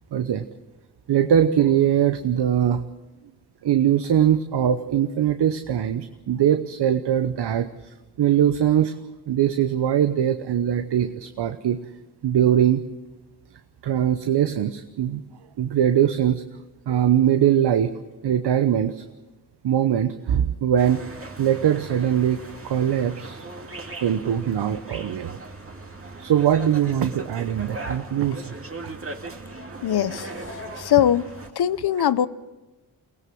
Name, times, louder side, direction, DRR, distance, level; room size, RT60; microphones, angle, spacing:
voice 1, 0.1-0.5 1.1-2.8 3.6-8.9 9.3-11.8 12.2-12.8 13.8-15.2 15.6-16.4 16.9-17.9 18.2-19.0 19.6-21.0 21.4-23.4 24.0-25.4 26.2-28.5 28.8-28.9, right 10 dB, 75° right, 1.0 m, -21 dB
sound 1, 20.8-31.5, right 2 dB, 35° right, 2.3 m, -38 dB
voice 2, 29.8-30.3 30.8-31.3 31.6-32.3, left 10 dB, 65° left, 0.9 m, -21 dB
23.5 x 17.0 x 7.8 m
cardioid pair, 60°, 41 cm